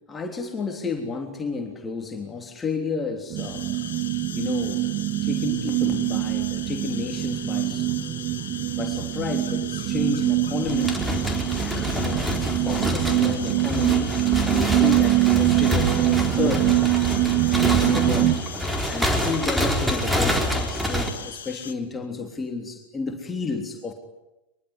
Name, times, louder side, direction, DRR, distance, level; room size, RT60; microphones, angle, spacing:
voice 1, 0.1-3.7 4.3-4.9 5.2-7.9 8.8-11.0 11.6-16.8 17.8-18.4 18.9-23.9, left 4 dB, 15° left, 3 dB, 3.4 m, -31 dB
sound 1, 3.3-18.4, right 16 dB, 35° right, 1.8 m, -24 dB
sound 2, 3.4-21.7, left 8 dB, 65° left, 2.0 m, -39 dB
sound 3, 10.7-21.1, equal, 5° right, 4.3 m, -27 dB
24.5 x 22.5 x 9.9 m, 0.96 s
figure-of-eight pair, 90°, 0 cm